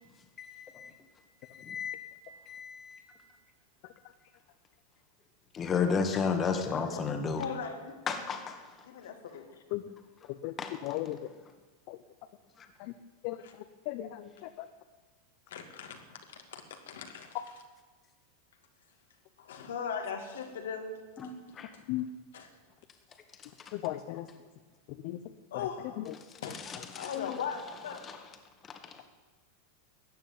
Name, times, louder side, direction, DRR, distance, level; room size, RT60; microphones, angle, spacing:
voice 1, 0.4-0.9 1.5-2.0 2.5-3.0 5.5-7.4 8.1-8.6 10.6-10.7 21.2-21.3 21.6-21.7 26.9-27.1, left 5 dB, 25° left, 6 dB, 1.8 m, -32 dB
voice 2, 7.4-7.9 8.8-9.5 15.5-17.4 19.4-21.0 22.3-22.4 25.5-26.0 26.4-28.0, left 6 dB, 85° left, 4 dB, 2.3 m, -39 dB
voice 3, 10.2-11.3 11.9-12.0 12.8-12.9 13.2-14.7 21.9-22.1 23.7-24.3 24.9-25.2 25.5-26.1 26.8-26.9 27.1-27.4, left 15 dB, 55° left, 8 dB, 0.9 m, -37 dB
14.5 x 9.0 x 9.4 m, 1.3 s
supercardioid pair, 120°, 0 cm